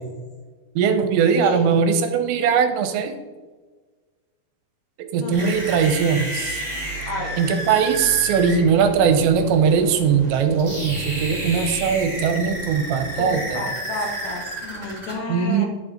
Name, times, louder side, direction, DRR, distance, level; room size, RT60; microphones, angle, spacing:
voice 1, 0.8-3.1 5.1-6.6 7.4-13.7 15.3-15.7, right 6 dB, 85° right, 7 dB, 3.1 m, -20 dB
voice 2, 1.3-1.7 5.1-5.5 7.1-7.4 13.2-15.7, left 2 dB, 65° left, 2 dB, 3.1 m, -31 dB
sound 1, 5.3-15.1, right 1 dB, 15° right, 2.6 m, -31 dB
10.5 x 6.5 x 4.4 m, 1.3 s
omnidirectional pair, 5.2 m